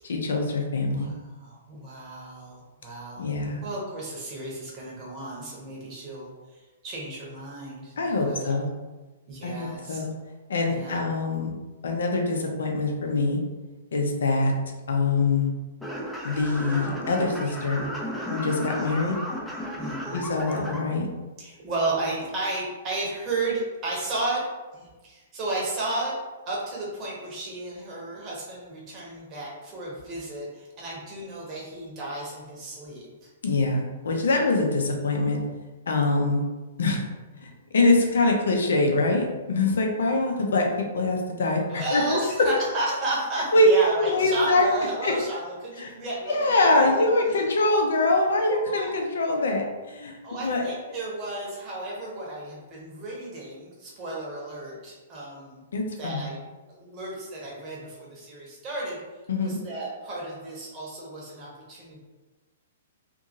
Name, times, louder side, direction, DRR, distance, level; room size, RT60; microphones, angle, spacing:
voice 1, 0.0-1.1 3.2-3.6 8.0-8.7 9.4-10.1 10.5-11.5 11.8-13.4 13.9-14.5 14.9-15.5 16.2-17.9 18.3-19.1 20.1-21.1 33.4-35.4 35.9-36.4 36.8-37.0 37.4-42.5 43.5-43.7 44.0-44.7 45.0-45.2 45.8-45.9 46.3-50.2 50.4-50.7 55.7-56.3 59.3-59.6, left 2 dB, 65° left, 2 dB, 0.5 m, -24 dB
voice 2, 0.9-3.3 3.6-6.3 6.8-7.9 8.2-8.5 9.3-10.0 10.7-11.0 19.8-20.3 21.4-24.4 24.7-26.1 26.5-33.3 41.7-46.5 46.8-46.9 48.5-48.9 50.2-55.6 56.0-56.4 56.7-59.0 59.4-62.0, right 2 dB, 30° right, -4 dB, 1.0 m, -33 dB
sound 1, 15.8-20.8, equal, 5° left, 0.5 m, -34 dB
2.7 x 2.6 x 2.6 m, 1.2 s
figure-of-eight pair, 110°, 0 cm